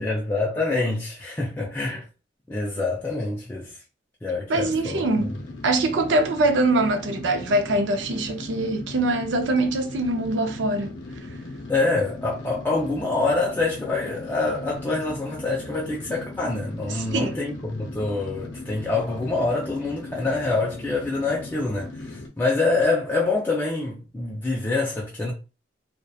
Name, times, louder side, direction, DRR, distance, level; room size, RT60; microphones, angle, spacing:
voice 1, 0.0-2.1 2.5-3.7 4.2-5.1 11.7-25.3, left 3 dB, 10° left, 0.4 m, -26 dB
sound 1, 4.5-22.3, left 2 dB, 75° left, 0.5 m, -38 dB
voice 2, 4.5-5.3 5.6-11.0 16.9-17.4, right 2 dB, 75° right, 0.5 m, -23 dB
2.7 x 2.1 x 2.3 m
head